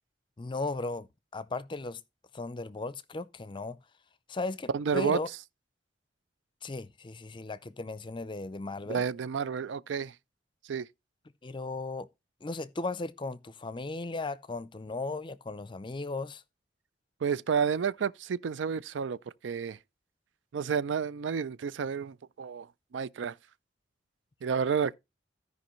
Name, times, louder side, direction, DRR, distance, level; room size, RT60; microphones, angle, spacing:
voice 1, 0.4-1.1 1.3-2.0 2.3-3.8 4.3-5.3 6.6-9.0 11.4-12.1 12.4-16.4, left 3 dB, 25° left, 0.5 m, -36 dB
voice 2, 4.7-5.2 8.9-10.1 10.6-10.9 17.2-19.2 19.4-19.8 20.5-22.7 22.9-23.4 24.4-24.9, right 6 dB, 85° right, 0.4 m, -30 dB
15.5 x 5.3 x 3.1 m
head